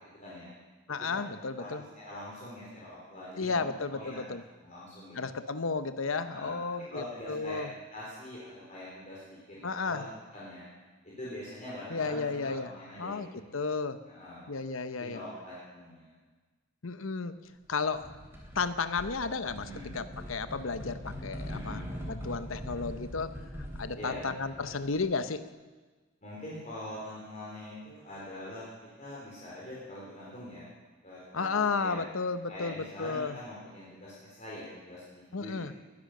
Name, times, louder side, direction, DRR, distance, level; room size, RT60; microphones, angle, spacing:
voice 1, 0.9-1.8 3.4-4.4 5.2-7.7 9.6-10.0 11.9-12.7 13.0-14.0 14.5-15.2 16.8-17.4 17.7-18.1 18.5-23.4 23.8-25.5 31.3-33.4 35.3-35.7, left 4 dB, 80° left, 11 dB, 0.9 m, -33 dB
voice 2, 2.0-3.7 3.9-4.3 4.6-5.2 6.2-6.6 6.9-7.6 7.9-10.1 10.3-10.6 11.0-13.6 14.1-14.5 15.0-16.1 19.6-19.9 21.5-21.9 24.0-24.3 26.2-28.6 29.0-30.7 31.0-32.0 32.5-35.7, left 1 dB, 35° left, -7 dB, 4.0 m, -43 dB
sound 1, 17.9-18.6 19.0-25.0, equal, 10° right, 3.1 m, -42 dB
20.5 x 10.5 x 6.6 m, 1.3 s
head